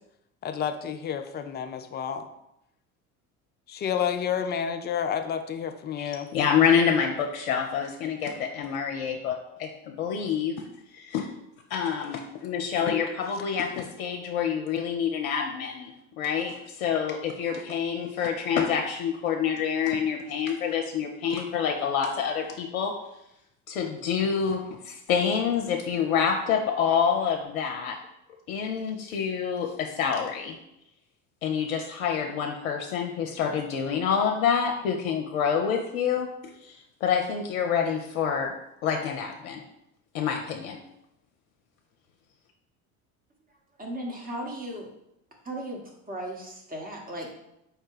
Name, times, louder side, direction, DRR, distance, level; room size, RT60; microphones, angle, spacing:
voice 1, 0.4-2.3 3.7-6.3 13.7-13.8, left 8 dB, 25° left, 8 dB, 0.4 m, -30 dB
voice 2, 6.0-10.6 10.9-11.3 11.7-23.0 23.7-28.0 28.5-30.6 31.4-36.3 36.6-38.5 38.8-39.6 40.1-40.8, left 7 dB, 75° left, 2 dB, 0.6 m, -27 dB
voice 3, 43.8-44.9 45.4-45.8 46.1-47.3, right 1 dB, 20° right, 0 dB, 1.2 m, -36 dB
4.7 x 2.2 x 4.7 m, 0.83 s
hypercardioid pair, 65°, 42 cm